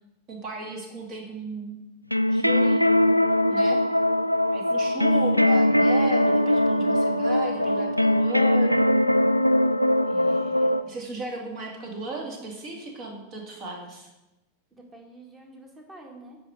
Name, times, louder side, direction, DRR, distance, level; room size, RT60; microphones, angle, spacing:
voice 1, 0.3-1.8 2.3-2.8 3.5-3.8 4.5-9.3 10.0-14.1, right 2 dB, 40° right, 1 dB, 2.3 m, -36 dB
sound 1, 2.1-10.8, left 1 dB, 90° left, 0.3 m, -21 dB
voice 2, 3.3-3.7 4.8-5.0 14.7-16.4, right 2 dB, 15° right, 1 dB, 2.2 m, -48 dB
9.0 x 5.4 x 6.5 m, 1.0 s
figure-of-eight pair, 90°, 0 cm